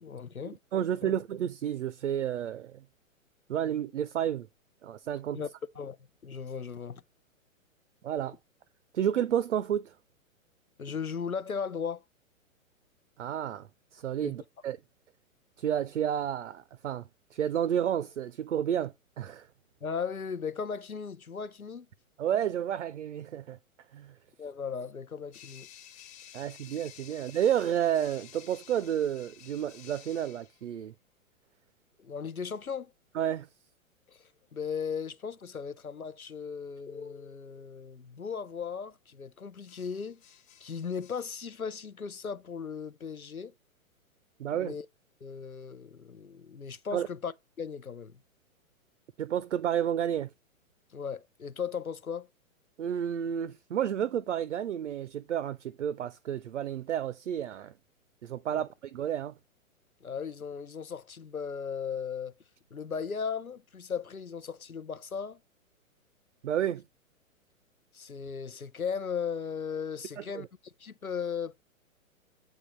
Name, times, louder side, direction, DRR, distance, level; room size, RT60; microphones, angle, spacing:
voice 1, 0.0-0.6 1.0-1.1 5.3-5.5 5.8-6.0 6.2-7.0 10.8-12.0 14.2-14.3 19.8-21.9 24.4-25.7 32.0-32.9 34.1-34.2 34.5-40.2 40.6-43.5 44.5-44.9 45.2-47.3 47.6-48.2 50.9-52.3 58.5-58.6 60.0-62.3 62.7-65.4 67.9-71.6, left 6 dB, 85° left, 0.8 m, -37 dB
voice 2, 0.7-2.8 3.5-4.5 4.8-5.4 8.0-8.4 8.9-9.9 13.2-14.8 15.6-19.5 22.2-23.6 23.9-24.2 26.3-30.9 33.1-33.5 44.4-44.7 46.9-47.1 49.2-50.3 52.8-57.7 58.2-59.3 66.4-66.8 70.2-70.5, right 10 dB, 60° right, 0.6 m, -31 dB
sound 1, 25.3-30.6 34.1-34.5 39.7-41.3, left 10 dB, 15° left, 1.0 m, -53 dB
7.8 x 3.7 x 6.6 m
figure-of-eight pair, 115°, 42 cm